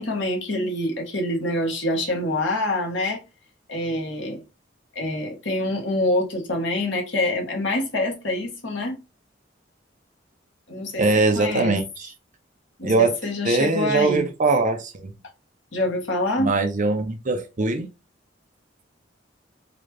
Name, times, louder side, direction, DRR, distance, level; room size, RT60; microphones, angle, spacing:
voice 1, 0.0-3.2 3.7-4.4 4.9-9.0 10.7-11.1 11.3-11.8 12.8-14.3 15.7-16.5, left 1 dB, 75° left, 1.2 m, -26 dB
voice 2, 11.0-12.1 12.8-13.2 13.4-15.1 16.4-17.9, right 3 dB, 45° right, 0.7 m, -22 dB
3.9 x 2.4 x 3.1 m
head